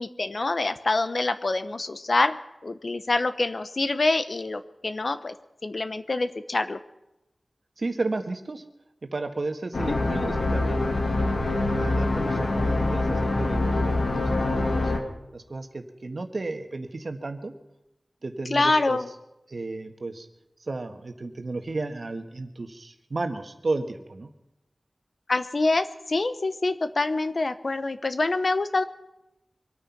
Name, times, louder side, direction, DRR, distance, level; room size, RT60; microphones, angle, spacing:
voice 1, 0.0-2.4 2.6-5.3 5.6-6.8 9.9-10.3 18.5-19.1 25.3-28.8, left 2 dB, 60° left, 11 dB, 0.9 m, -26 dB
voice 2, 7.8-8.6 9.0-10.9 11.3-14.9 15.3-17.5 18.2-19.0 19.5-20.3 20.6-24.3, right 3 dB, 65° right, 6 dB, 1.5 m, -33 dB
sound 1, 9.7-15.0, left 2 dB, 75° left, 2.0 m, -25 dB
24.0 x 9.2 x 5.9 m, 0.91 s
wide cardioid pair, 60°, 0 cm